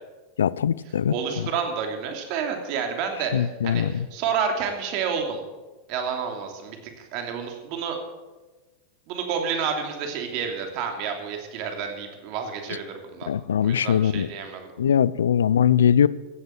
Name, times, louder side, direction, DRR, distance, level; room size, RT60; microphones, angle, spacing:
voice 1, 0.4-1.1 3.3-4.1 13.3-14.3 14.8-16.1, left 8 dB, 85° left, 21 dB, 0.4 m, -21 dB
voice 2, 1.1-5.4 5.9-8.0 9.1-13.3 13.6-14.7, right 6 dB, 55° right, 4 dB, 2.9 m, -30 dB
15.0 x 8.2 x 7.8 m, 1.2 s
hypercardioid pair, 100°, 0 cm